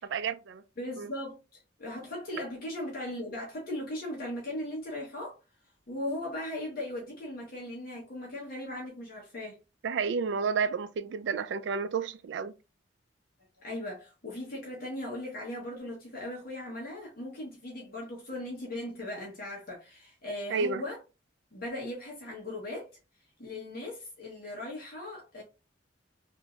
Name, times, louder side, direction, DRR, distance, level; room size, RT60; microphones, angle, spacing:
voice 1, 0.1-0.6 1.0-1.1 9.8-12.5 20.5-20.8, right 5 dB, 70° right, 0.3 m, -31 dB
voice 2, 0.8-5.4 5.9-9.6 13.6-21.0 21.5-22.9 23.4-25.4, left 1 dB, 55° left, 0.9 m, -38 dB
3.0 x 2.6 x 2.3 m
head